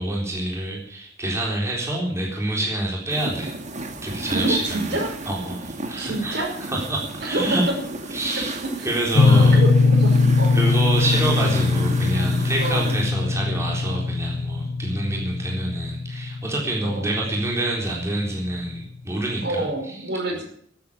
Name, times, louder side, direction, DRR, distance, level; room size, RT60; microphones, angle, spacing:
voice 1, 0.0-3.5 4.0-5.0 5.3-7.6 8.1-8.5 8.8-9.6 10.5-20.1, right 1 dB, 15° right, -2 dB, 3.9 m, -27 dB
sound 1, 3.1-13.1, right 2 dB, 40° right, 1.9 m, -33 dB
voice 2, 4.3-5.1 6.0-6.6 7.2-7.8 8.4-8.5 8.8-8.9 9.3-10.6 12.6-12.8 16.8-17.1 19.4-20.4, right 2 dB, 60° right, 0 dB, 5.5 m, -27 dB
sound 2, 9.1-17.9, left 3 dB, 60° left, 0.9 m, -20 dB
13.0 x 8.8 x 9.7 m, 0.64 s
head